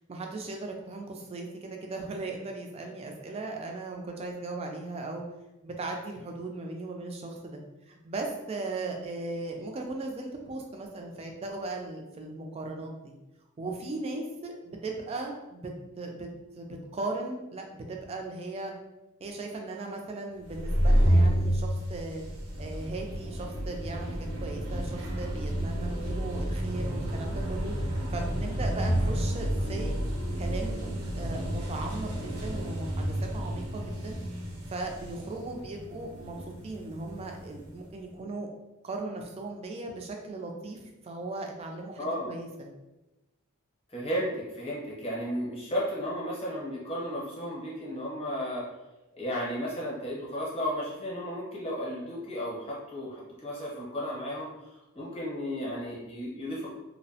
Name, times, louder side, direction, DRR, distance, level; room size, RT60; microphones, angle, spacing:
voice 1, 0.1-5.2 5.6-7.6 7.9-13.1 13.6-15.7 16.0-16.3 16.6-18.7 19.2-22.2 22.6-29.9 30.4-30.9 31.2-34.2 34.7-38.5 38.8-42.7, right 2 dB, 30° right, 2 dB, 0.3 m, -37 dB
sound 1, 20.4-37.8, equal, 75° right, 0.6 m, -30 dB
voice 2, 42.0-42.3 43.9-48.6 49.2-54.5 54.9-56.7, equal, 25° left, -5 dB, 0.8 m, -34 dB
2.6 x 2.0 x 2.7 m, 1.0 s
head